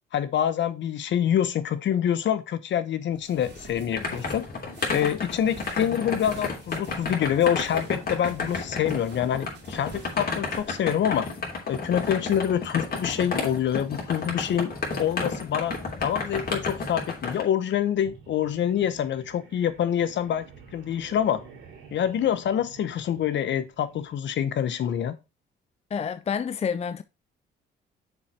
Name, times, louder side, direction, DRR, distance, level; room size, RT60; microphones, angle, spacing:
voice 1, 0.1-4.5 4.9-11.3 11.7-15.7 16.0-20.4 20.7-21.4 21.9-25.2, left 9 dB, 65° left, 1.1 m, -26 dB
sound 1, 3.1-10.9, right 4 dB, 60° right, 2.6 m, -48 dB
sound 2, 3.4-17.4, left 4 dB, 50° left, 3.0 m, -32 dB
sound 3, 17.9-24.1, right 6 dB, 90° right, 3.1 m, -49 dB
voice 2, 25.9-27.0, left 7 dB, 30° left, 0.5 m, -28 dB
6.8 x 5.1 x 4.5 m
cardioid pair, 90°, 20 cm